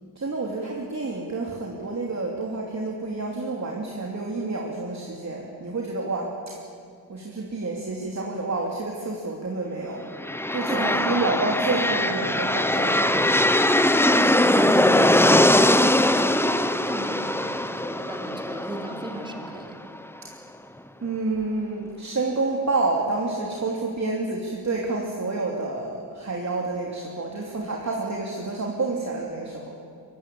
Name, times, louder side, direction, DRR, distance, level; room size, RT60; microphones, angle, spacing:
voice 1, 0.2-6.3 7.1-10.1 10.5-13.2 21.0-29.7, right 3 dB, 40° right, -1 dB, 3.1 m, -29 dB
sound 1, 10.1-20.0, left 1 dB, 5° left, 0.9 m, -21 dB
voice 2, 10.7-11.2 13.9-19.8, right 1 dB, 10° right, 2 dB, 3.5 m, -34 dB
24.5 x 21.5 x 8.6 m, 2.4 s
wide cardioid pair, 115°, 40 cm